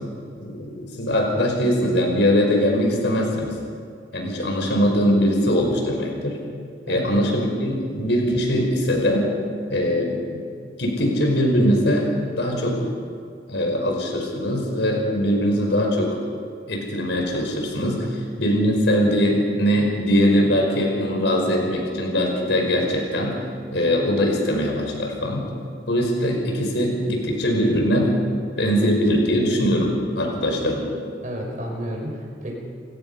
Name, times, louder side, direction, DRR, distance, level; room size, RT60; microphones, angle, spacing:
voice 1, 0.4-3.6 4.1-6.4 6.9-9.3 9.7-10.4 10.8-12.0 12.4-12.9 13.5-16.2 16.7-18.1 18.4-23.4 23.7-25.5 25.9-30.9, equal, 75° left, 1 dB, 5.2 m, -21 dB
voice 2, 31.2-32.6, equal, 45° right, 0 dB, 5.7 m, -32 dB
29.0 x 17.5 x 5.6 m, 2.2 s
head